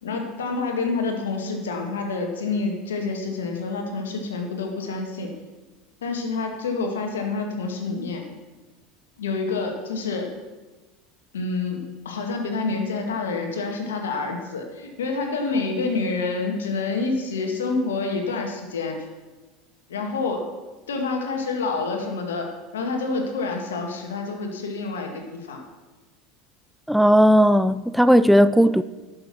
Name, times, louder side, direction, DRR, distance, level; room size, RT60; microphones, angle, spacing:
voice 1, 0.0-5.3 6.0-8.2 9.2-10.3 11.3-19.0 19.9-20.4 20.9-22.5 22.7-25.6, left 3 dB, 85° left, 1.8 m, -28 dB
voice 2, 26.9-28.8, equal, ahead, 0.4 m, -16 dB
11.0 x 6.7 x 6.1 m
hypercardioid pair, 85°, 0 cm